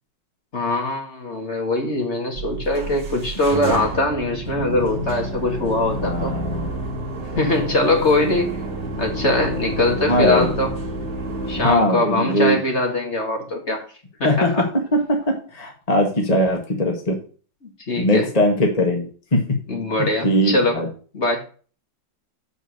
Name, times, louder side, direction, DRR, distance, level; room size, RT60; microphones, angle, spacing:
voice 1, 0.5-6.4 7.4-8.6 9.0-10.8 11.5-13.8 14.2-14.6 17.9-18.3 19.7-20.8 21.1-21.4, left 2 dB, 40° left, 2.2 m, -22 dB
sound 1, 2.4-11.8, right 1 dB, 40° right, 1.6 m, -29 dB
voice 2, 6.0-6.7 10.1-10.5 11.6-12.6 14.2-17.2 18.0-19.5 20.2-20.9, left 1 dB, 20° left, 1.6 m, -20 dB
7.5 x 5.5 x 6.4 m
omnidirectional pair, 2.0 m